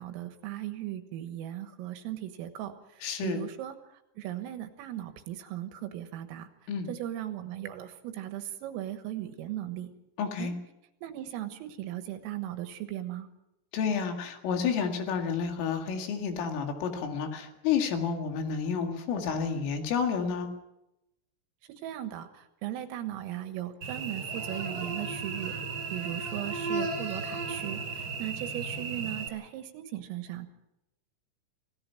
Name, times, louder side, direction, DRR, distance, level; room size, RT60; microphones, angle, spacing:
voice 1, 0.0-2.7 3.2-3.8 4.2-6.5 6.9-9.9 10.4-10.6 11.0-13.3 21.8-25.5 25.9-30.5, right 12 dB, 85° right, 9 dB, 4.0 m, -37 dB
voice 2, 3.0-3.4 6.7-6.9 10.2-10.5 13.7-20.5, left 6 dB, 75° left, 4 dB, 4.6 m, -30 dB
Cricket / Buzz, 23.8-29.3, right 4 dB, 25° right, 3.3 m, -35 dB
27.0 x 17.0 x 5.9 m, 0.87 s
omnidirectional pair, 6.0 m